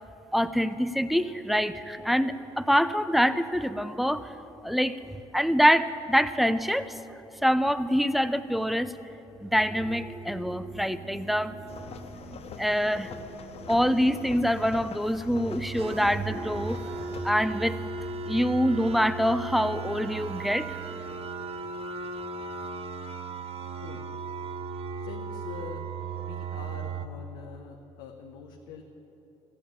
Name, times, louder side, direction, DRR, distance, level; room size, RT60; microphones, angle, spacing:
voice 1, 0.3-4.3 4.6-6.9 7.4-8.9 9.4-11.6 12.6-13.1 13.7-16.8 17.2-17.8 18.3-20.8, equal, ahead, 12 dB, 0.6 m, -25 dB
sound 1, 7.9-8.8 9.3-27.1, right 4 dB, 45° right, 0.9 m, -38 dB
sound 2, 11.7-17.3, left 6 dB, 50° left, 0.8 m, -43 dB
voice 2, 25.0-25.8 26.2-28.8, left 7 dB, 75° left, 2 dB, 0.9 m, -44 dB
14.5 x 8.7 x 8.7 m, 3.0 s
hypercardioid pair, 55°, 14 cm